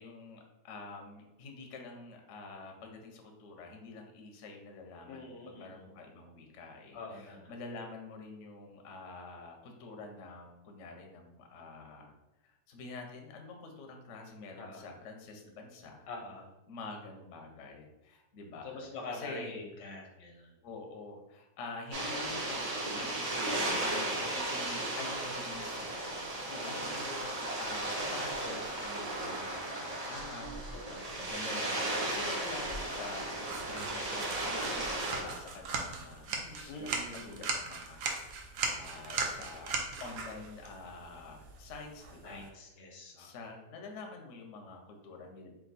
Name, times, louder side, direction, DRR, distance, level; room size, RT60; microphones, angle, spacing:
voice 1, 0.0-12.1 12.4-16.1 16.7-18.8 19.1-19.6 20.6-22.6 22.9-30.6 31.2-33.3 33.7-42.5 43.2-45.5, left 3 dB, 60° left, 3 dB, 0.9 m, -47 dB
voice 2, 5.1-5.9 6.9-7.5 14.6-14.8 16.1-16.5 18.6-20.6 26.5-27.0 30.7-31.2 36.7-37.5 42.2-43.4, left 2 dB, 90° left, 1 dB, 1.4 m, -45 dB
sound 1, 21.9-35.2, right 1 dB, 50° right, 0.4 m, -35 dB
sound 2, 33.4-42.5, right 4 dB, 75° right, 1.2 m, -39 dB
3.5 x 2.6 x 4.0 m, 0.96 s
omnidirectional pair, 1.8 m